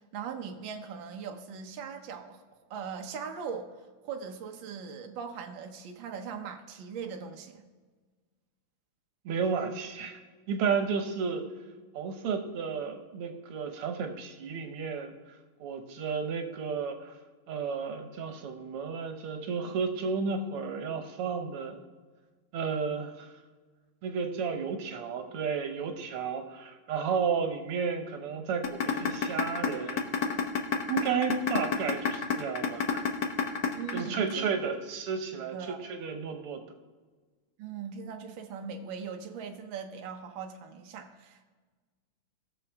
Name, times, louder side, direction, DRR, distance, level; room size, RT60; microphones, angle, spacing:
voice 1, 0.0-2.4 2.7-3.7 4.0-7.6 33.7-34.5 35.5-35.8 37.6-41.4, right 6 dB, 65° right, 4 dB, 1.6 m, -40 dB
voice 2, 9.3-10.2 10.5-11.4 11.9-15.4 15.6-17.1 17.5-21.8 22.5-23.3 24.0-30.0 30.9-33.0 33.9-35.6 35.8-36.6, right 5 dB, 85° right, 6 dB, 2.0 m, -32 dB
sound 1, 28.6-34.6, left 8 dB, 60° left, 1.4 m, -28 dB
19.0 x 6.9 x 3.5 m, 1.4 s
omnidirectional pair, 2.4 m